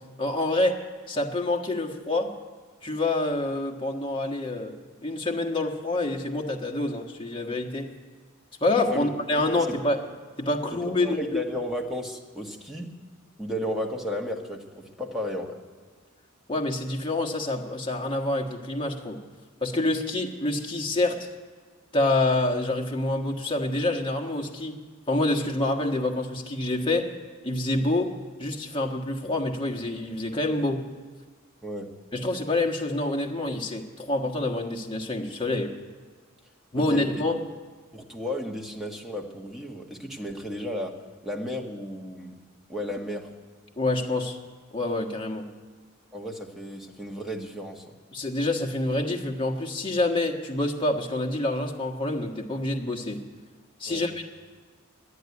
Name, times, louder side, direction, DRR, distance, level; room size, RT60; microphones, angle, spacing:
voice 1, 0.2-0.8 1.1-2.3 2.8-4.7 5.0-7.9 8.6-10.0 10.4-11.4 16.5-19.2 19.6-21.3 21.9-24.8 25.1-27.1 27.4-28.1 28.4-30.8 32.1-35.7 36.7-37.4 43.8-44.4 44.7-45.4 48.1-53.2 53.8-54.3, left 2 dB, 25° left, 2 dB, 1.4 m, -27 dB
voice 2, 8.9-9.8 10.7-12.9 13.4-15.6 31.6-31.9 36.7-37.1 37.9-42.3 42.7-43.3 46.1-47.9 53.8-54.1, left 1 dB, ahead, -1 dB, 1.4 m, -34 dB
11.5 x 11.0 x 9.5 m, 1.5 s
head